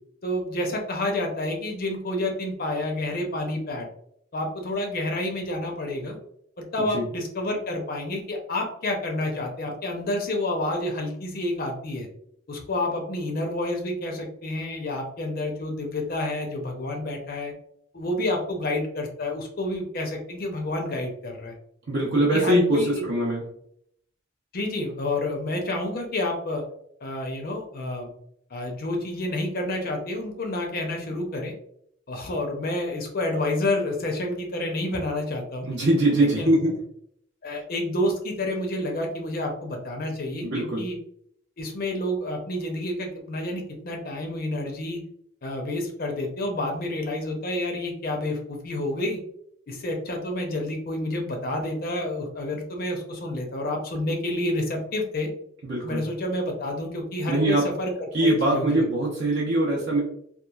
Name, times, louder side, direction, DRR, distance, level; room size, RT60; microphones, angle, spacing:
voice 1, 0.2-3.9 4.3-6.2 6.7-12.1 12.5-17.5 17.9-21.5 22.1-23.0 24.5-26.6 27.0-28.1 28.5-31.5 32.1-35.7 36.2-36.5 37.4-41.0 41.6-45.0 45.4-49.2 49.7-55.3 55.8-57.9 58.2-58.9, left 1 dB, 45° left, 2 dB, 0.5 m, -29 dB
voice 2, 21.9-23.4 35.7-36.8 40.4-40.9 55.6-56.0 57.3-57.7 58.1-60.0, right 1 dB, 55° right, -4 dB, 0.6 m, -22 dB
2.9 x 2.3 x 2.3 m, 0.69 s
head